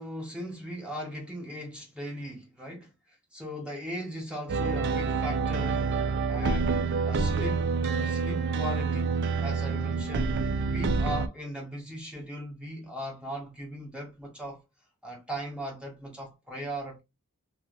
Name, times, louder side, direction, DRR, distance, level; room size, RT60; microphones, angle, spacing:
voice 1, 0.0-5.9 6.3-14.6 15.0-17.0, equal, 5° right, 0.7 m, -38 dB
sound 1, 4.5-11.3, right 4 dB, 55° right, 0.4 m, -27 dB
3.3 x 2.3 x 2.3 m
head